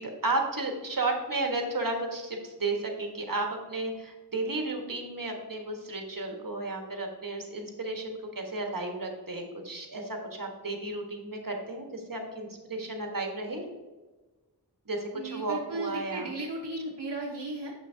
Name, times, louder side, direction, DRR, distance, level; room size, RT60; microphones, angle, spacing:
voice 1, 0.0-13.6 14.9-16.3, right 2 dB, 50° right, 3 dB, 1.4 m, -33 dB
voice 2, 15.1-17.7, right 2 dB, 70° right, -2 dB, 1.0 m, -35 dB
7.3 x 6.3 x 2.7 m, 1.2 s
wide cardioid pair, 55°, 42 cm